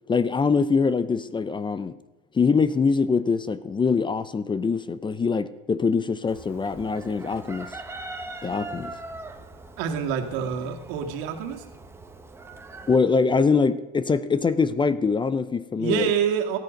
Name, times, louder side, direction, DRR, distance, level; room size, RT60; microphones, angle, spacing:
voice 1, 0.1-1.9 2.3-7.8 8.4-8.9 12.9-16.1, left 5 dB, 15° left, 15 dB, 0.6 m, -23 dB
Chicken rooster, 6.3-13.0, right 2 dB, 10° right, 1.5 m, -41 dB
voice 2, 9.8-11.6 15.8-16.6, right 8 dB, 70° right, 3 dB, 2.2 m, -26 dB
18.0 x 14.0 x 5.3 m, 1.1 s
supercardioid pair, 115°, 29 cm